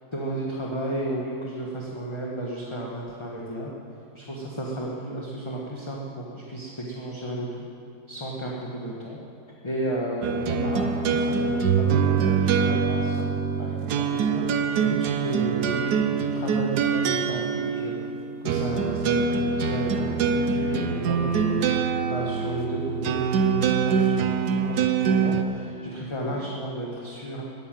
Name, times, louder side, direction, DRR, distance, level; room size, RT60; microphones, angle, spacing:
voice 1, 0.1-3.7 4.1-7.7 8.1-9.2 9.6-18.1 18.4-27.4, right 1 dB, 20° left, -3 dB, 1.3 m, -33 dB
sound 1, 10.2-25.4, right 6 dB, 80° right, 1.3 m, -24 dB
13.5 x 9.3 x 9.2 m, 2.7 s
omnidirectional pair, 1.7 m